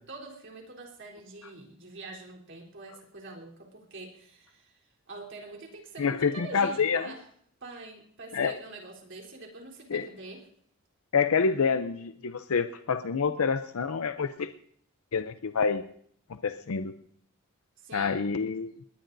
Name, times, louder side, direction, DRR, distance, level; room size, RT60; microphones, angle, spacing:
voice 1, 0.1-7.2 7.6-10.4 17.8-18.1, right 2 dB, 60° right, -1 dB, 3.7 m, -45 dB
voice 2, 6.0-7.0 8.3-8.5 9.9-10.1 11.1-14.5 15.1-15.8 16.3-16.9 17.9-18.8, left 5 dB, 80° left, 9 dB, 0.6 m, -27 dB
20.5 x 19.5 x 2.7 m, 0.64 s
head